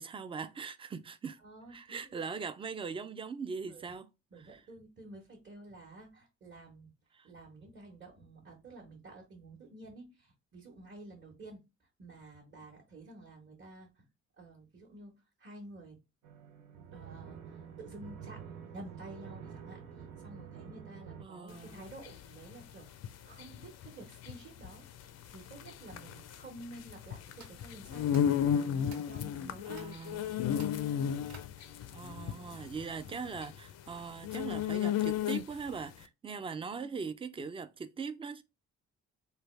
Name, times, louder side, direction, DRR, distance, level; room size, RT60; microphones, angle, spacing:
voice 1, 0.0-1.4 1.7-4.1 4.5-4.6 21.2-21.9 29.7-30.7 31.9-38.4, right 5 dB, 20° right, 0.3 m, -41 dB
voice 2, 1.4-2.2 3.7-3.9 4.3-6.9 7.2-14.0 14.4-15.1 15.4-16.0 16.9-22.9 23.2-28.1 28.5-29.8 36.6-37.1, right 2 dB, 35° right, 1.1 m, -51 dB
sound 1, 16.2-21.2, right 7 dB, 85° right, 0.7 m, -48 dB
sound 2, 21.5-35.7, left 9 dB, 60° left, 0.4 m, -34 dB
sound 3, 27.3-29.2 29.7-30.1 30.5-31.9, right 4 dB, 60° right, 1.2 m, -56 dB
3.4 x 2.3 x 3.1 m
cardioid pair, 90°, 30 cm